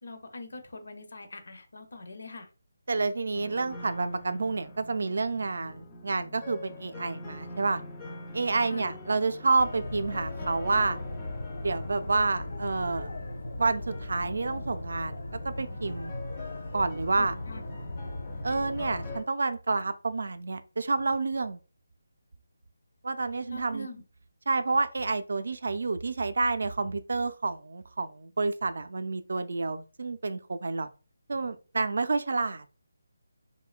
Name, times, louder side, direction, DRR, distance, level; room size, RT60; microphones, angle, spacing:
voice 1, 0.0-2.5 8.6-8.9 17.2-17.6 23.5-24.0, left 1 dB, 70° left, 0.6 m, -43 dB
voice 2, 2.9-7.8 8.3-11.0 11.6-13.1 13.6-16.1 16.7-17.3 18.4-21.6 23.0-23.9 24.5-30.9 31.3-32.7, right 3 dB, 65° right, 0.3 m, -29 dB
sound 1, 3.3-19.2, left 2 dB, 15° left, 0.4 m, -45 dB
sound 2, 9.6-19.2, left 1 dB, 90° left, 1.0 m, -38 dB
2.8 x 2.1 x 2.3 m
figure-of-eight pair, 170°, 0 cm